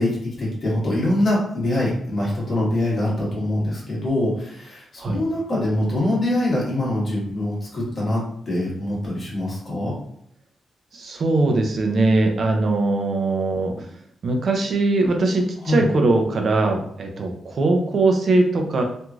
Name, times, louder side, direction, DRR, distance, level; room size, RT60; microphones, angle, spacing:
voice 1, 0.0-9.9 15.6-15.9, left 1 dB, 35° left, -6 dB, 1.3 m, -24 dB
voice 2, 10.9-13.9 14.2-18.8, right 2 dB, 45° right, 3 dB, 0.5 m, -21 dB
3.0 x 2.5 x 2.3 m, 0.68 s
wide cardioid pair, 160°, 0 cm